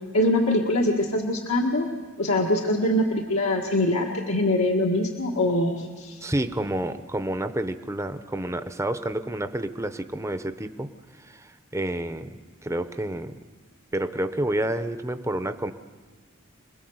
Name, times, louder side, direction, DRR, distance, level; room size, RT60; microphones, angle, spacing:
voice 1, 0.1-1.9 2.2-6.2, left 1 dB, 80° left, -1 dB, 1.8 m, -23 dB
voice 2, 6.2-13.3 13.9-15.7, right 1 dB, 15° right, 9 dB, 0.7 m, -29 dB
27.0 x 20.5 x 7.9 m, 1.4 s
head